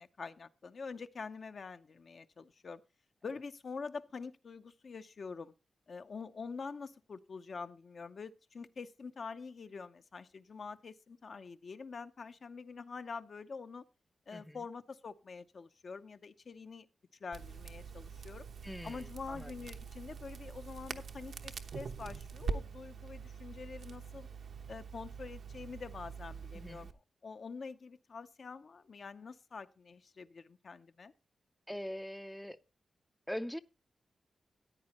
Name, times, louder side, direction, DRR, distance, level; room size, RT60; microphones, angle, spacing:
voice 1, 0.0-2.8 3.2-5.5 5.9-13.9 14.3-16.9 17.2-18.5 18.8-24.3 24.7-26.9 27.2-31.1, left 5 dB, 55° left, 0.7 m, -46 dB
Crackle, 17.3-26.9, right 5 dB, 80° right, 1.0 m, -44 dB
voice 2, 18.6-19.5 26.5-26.9 31.7-32.6 33.3-33.6, equal, 5° left, 0.4 m, -42 dB
14.0 x 9.6 x 2.9 m
wide cardioid pair, 115°, 0 cm